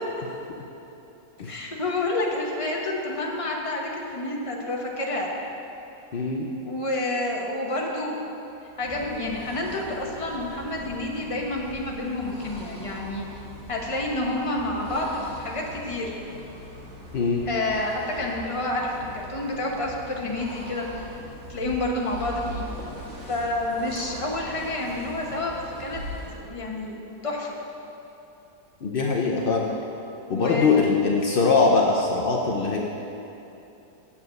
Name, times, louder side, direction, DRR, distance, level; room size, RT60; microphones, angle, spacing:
voice 1, 1.4-5.3 6.6-8.2 8.8-13.2 13.7-16.2 17.5-21.1 21.5-22.6 23.3-26.0 26.3-27.5 30.2-30.7, left 2 dB, 25° left, -1 dB, 0.9 m, -29 dB
voice 2, 6.1-6.5 17.1-17.4 28.8-29.7 30.3-32.8, left 4 dB, 70° left, -1 dB, 0.5 m, -22 dB
sound 1, 8.7-26.5, left 1 dB, 40° right, 1.6 m, -41 dB
8.4 x 7.2 x 6.4 m, 3.0 s
omnidirectional pair, 1.8 m